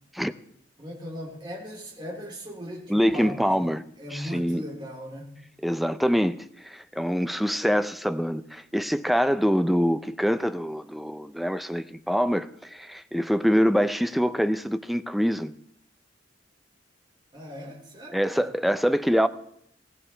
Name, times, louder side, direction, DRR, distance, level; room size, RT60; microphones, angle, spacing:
voice 1, 0.8-3.7 4.0-5.3 17.3-18.5, equal, 25° right, 3.3 m, -38 dB
voice 2, 2.9-3.8 4.1-4.6 5.6-6.4 6.6-15.5 18.1-19.3, equal, ahead, 0.4 m, -24 dB
16.5 x 16.0 x 3.3 m
head